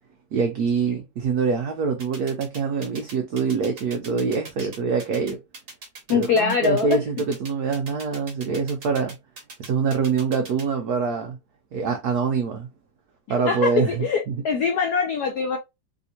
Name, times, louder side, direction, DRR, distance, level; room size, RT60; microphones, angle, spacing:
voice 1, 0.3-5.4 6.1-9.2 9.6-11.4 11.7-12.7 13.3-14.3, right 5 dB, 80° right, 0.8 m, -25 dB
sound 1, 2.0-10.6, right 3 dB, 40° right, 0.8 m, -40 dB
voice 2, 6.1-7.0 13.4-15.6, left 5 dB, 75° left, 0.9 m, -23 dB
3.5 x 2.8 x 2.7 m
omnidirectional pair, 2.2 m